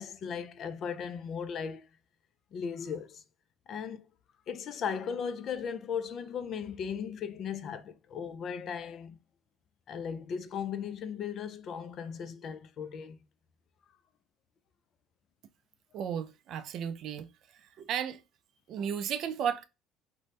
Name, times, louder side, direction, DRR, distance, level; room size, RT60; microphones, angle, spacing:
voice 1, 0.0-1.9 2.5-3.2 3.7-4.0 4.5-9.2 9.9-13.2, left 7 dB, 50° left, 0.4 m, -37 dB
voice 2, 15.9-17.3 17.6-18.2 18.7-19.6, right 8 dB, 60° right, 0.4 m, -34 dB
2.6 x 2.1 x 3.1 m
supercardioid pair, 100°, 0 cm